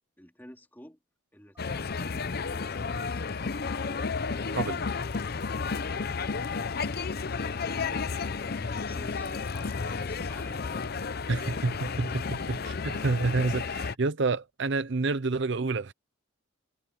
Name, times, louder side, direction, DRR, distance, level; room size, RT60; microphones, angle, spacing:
voice 1, 0.2-1.0 1.3-3.3 8.3-11.0, left 1 dB, 10° left, 2.7 m, -51 dB
Telephone, 1.5-1.8 2.2-2.4 2.8-3.1 3.5-3.7 4.1-4.4 4.8-5.0 5.5-5.7 6.1-6.3 6.8-7.0 7.4-7.6 8.1-8.3 8.7-8.9 9.4-9.6 10.0-10.2 10.7-10.9 11.3-11.5, right 2 dB, 15° right, 5.8 m, -62 dB
sound 1, 1.6-13.9, left 4 dB, 45° left, 0.6 m, -32 dB
voice 2, 4.5-4.8 11.3-15.9, right 3 dB, 55° right, 0.6 m, -29 dB
head